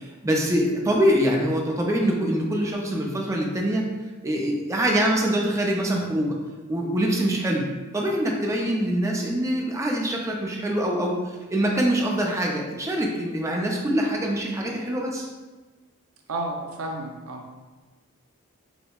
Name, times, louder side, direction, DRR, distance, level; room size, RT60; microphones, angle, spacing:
voice 1, 0.0-3.9 4.2-6.4 6.7-7.7 7.9-15.3, right 1 dB, 15° right, -1 dB, 0.4 m, -24 dB
voice 2, 16.3-17.7, right 2 dB, 85° right, 1 dB, 0.6 m, -32 dB
5.1 x 2.0 x 2.3 m, 1.3 s
head